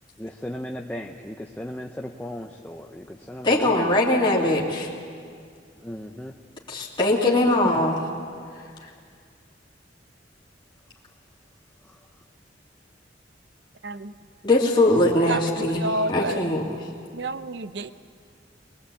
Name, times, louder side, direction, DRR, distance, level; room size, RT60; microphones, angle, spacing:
voice 1, 0.2-3.9 5.8-6.3 7.6-7.8, equal, 10° left, 2 dB, 0.7 m, -36 dB
voice 2, 3.4-4.9 6.7-8.0 14.4-16.6, left 1 dB, 25° left, -3 dB, 2.6 m, -21 dB
voice 3, 15.3-16.4 17.1-17.9, right 2 dB, 65° right, 12 dB, 0.7 m, -29 dB
22.0 x 22.0 x 8.5 m, 2.2 s
head